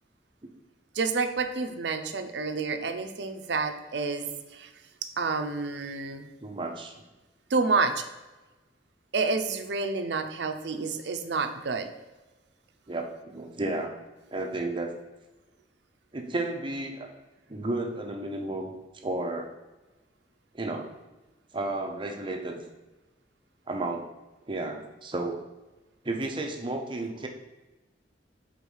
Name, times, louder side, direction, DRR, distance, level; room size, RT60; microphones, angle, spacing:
voice 1, 0.9-4.7 5.2-6.3 7.5-8.0 9.1-11.9, right 4 dB, 65° right, 7 dB, 0.5 m, -29 dB
voice 2, 6.4-7.0 12.9-13.9 14.3-14.9 16.1-17.1 17.5-18.7 19.0-19.5 20.5-20.9 21.5-22.6 23.7-24.1 24.5-25.4 26.0-27.3, right 2 dB, 25° right, 3 dB, 0.7 m, -32 dB
4.7 x 3.7 x 5.4 m, 1.1 s
head